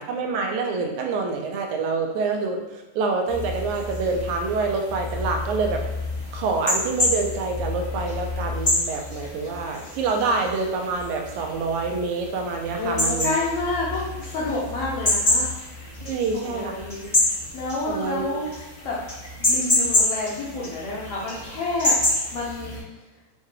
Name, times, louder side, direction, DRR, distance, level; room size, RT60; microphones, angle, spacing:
voice 1, 0.0-5.8 6.3-13.3 16.1-16.7 17.9-18.5, right 4 dB, 90° right, 2 dB, 2.0 m, -26 dB
sound 1, 3.3-22.8, left 2 dB, 45° left, 0.4 m, -28 dB
voice 2, 12.7-15.5 16.4-17.1 17.5-18.5 18.8-19.0 19.4-22.0 22.3-22.8, left 2 dB, 75° left, -5 dB, 1.5 m, -29 dB
6.4 x 2.2 x 3.1 m, 1.0 s
omnidirectional pair, 3.3 m